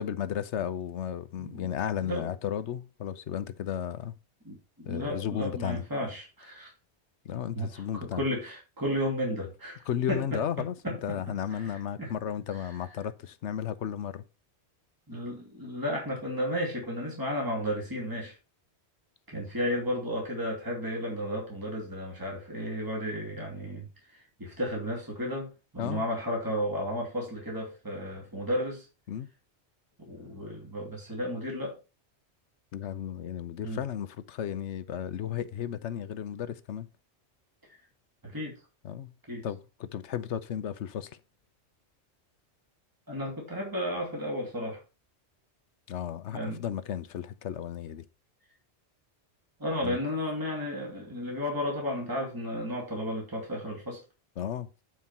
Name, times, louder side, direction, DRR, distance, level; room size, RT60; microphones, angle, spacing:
voice 1, 0.0-4.2 4.8-5.8 7.2-8.2 9.9-14.2 25.8-26.0 29.1-29.3 32.7-36.9 38.8-39.1 39.4-41.2 45.9-48.0 49.8-50.0 54.4-54.7, left 9 dB, 85° left, 1.1 m, -34 dB
voice 2, 1.4-1.7 2.0-2.3 4.4-6.7 7.5-11.2 11.5-12.1 15.1-18.3 19.3-28.9 30.0-31.8 33.6-33.8 38.2-38.6 39.3-39.5 43.1-44.8 46.3-46.6 49.6-54.0, equal, 20° right, 2.8 m, -33 dB
9.5 x 4.7 x 5.5 m
omnidirectional pair, 1.1 m